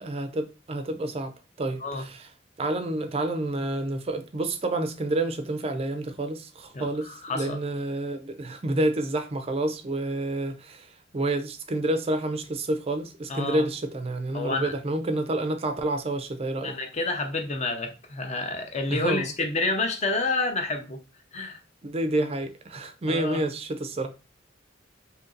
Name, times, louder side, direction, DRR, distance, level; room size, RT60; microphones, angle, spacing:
voice 1, 0.0-2.3 2.6-16.8 18.9-19.3 21.8-24.1, right 1 dB, 30° right, 0.4 m, -29 dB
voice 2, 6.7-7.6 13.3-13.6 14.3-14.7 16.6-21.0 21.3-21.6 23.0-23.4, left 2 dB, 35° left, 0.6 m, -29 dB
2.8 x 2.6 x 3.7 m
head